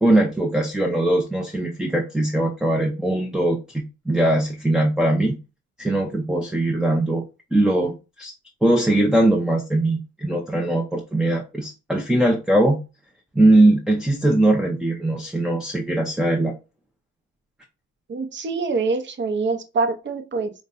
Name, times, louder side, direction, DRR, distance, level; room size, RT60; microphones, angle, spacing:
voice 1, 0.0-5.4 5.8-7.2 7.5-8.3 8.6-12.8 13.4-16.5, right 1 dB, ahead, 0.5 m, -20 dB
voice 2, 18.1-20.5, right 4 dB, 40° right, 0.7 m, -25 dB
5.1 x 2.2 x 2.5 m
cardioid pair, 90°, 30 cm